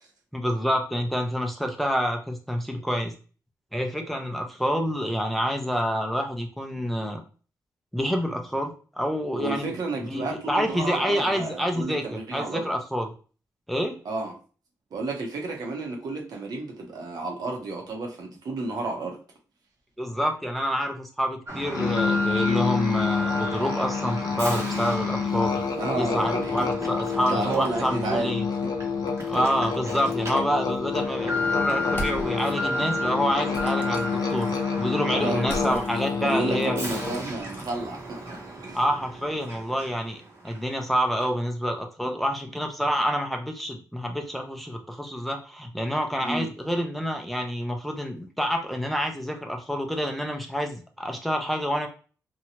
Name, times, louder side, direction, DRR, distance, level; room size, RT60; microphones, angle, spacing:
voice 1, 0.3-3.1 3.7-7.2 7.9-9.7 10.1-13.1 13.7-14.0 20.0-25.6 26.0-28.5 29.3-36.7 38.7-51.9, equal, ahead, 3 dB, 0.4 m, -28 dB
voice 2, 9.4-12.7 14.0-14.3 14.9-19.2 25.8-26.7 27.3-28.4 35.1-35.8 36.2-38.8 46.2-46.5, right 3 dB, 70° right, 0 dB, 0.9 m, -31 dB
Alarm, 21.5-40.1 40.5-40.6 41.2-41.3, equal, 45° right, 0.8 m, -34 dB
Musical instrument, 21.7-37.3, left 6 dB, 70° left, 0.5 m, -28 dB
sound 1, 31.8-32.5 33.5-34.6 35.4-37.7, equal, 30° left, 0.8 m, -39 dB
2.7 x 2.2 x 2.9 m, 0.38 s
wide cardioid pair, 110°, 7 cm